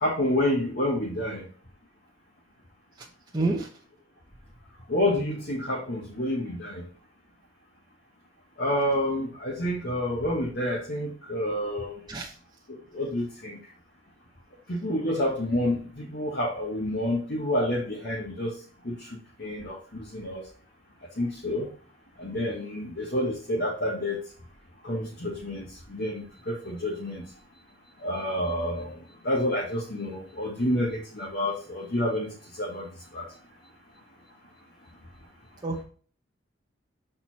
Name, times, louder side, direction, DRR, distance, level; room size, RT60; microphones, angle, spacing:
voice 1, 0.0-1.5 4.9-6.8 8.6-11.9 12.9-13.6 14.7-18.5 18.8-19.1 19.4-20.4 21.2-21.7 22.2-24.2 24.8-27.2 28.0-29.0 29.2-32.3 32.6-32.9 33.1-33.2, left 1 dB, 55° left, -4 dB, 1.5 m, -28 dB
voice 2, 3.3-3.7 12.1-12.3 35.6-35.8, right 2 dB, 20° right, -2 dB, 0.8 m, -28 dB
6.3 x 4.3 x 4.2 m, 0.43 s
head